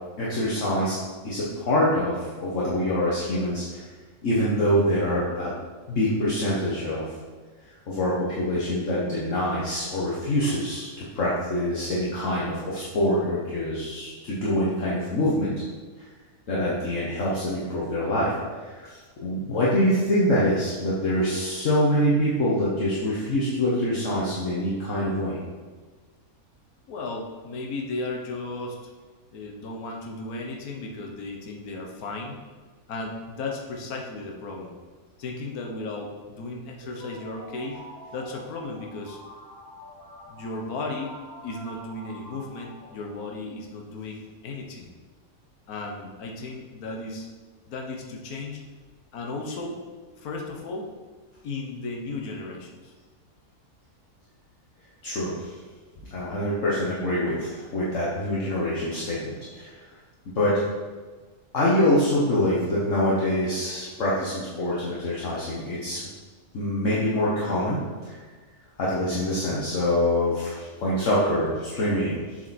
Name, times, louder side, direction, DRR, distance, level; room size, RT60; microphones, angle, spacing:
voice 1, 0.2-1.0 1.2-3.8 4.2-5.5 5.9-7.1 7.9-15.5 16.0-16.1 16.5-18.3 18.6-25.4 55.0-55.5 56.1-59.9 60.3-60.6 61.5-66.1 66.5-68.2 68.8-72.5, left 1 dB, 60° left, -7 dB, 1.5 m, -25 dB
voice 2, 26.9-28.9 29.3-32.4 32.9-34.7 35.2-37.8 38.1-39.2 40.3-41.2 41.4-44.9 45.7-47.3 47.7-48.6 49.1-49.8 50.2-50.9 51.4-52.9, left 3 dB, 80° left, 1 dB, 1.4 m, -35 dB
sound 1, 36.8-43.6, equal, 15° right, 0.9 m, -46 dB
7.5 x 4.8 x 4.1 m, 1.4 s
omnidirectional pair, 1.5 m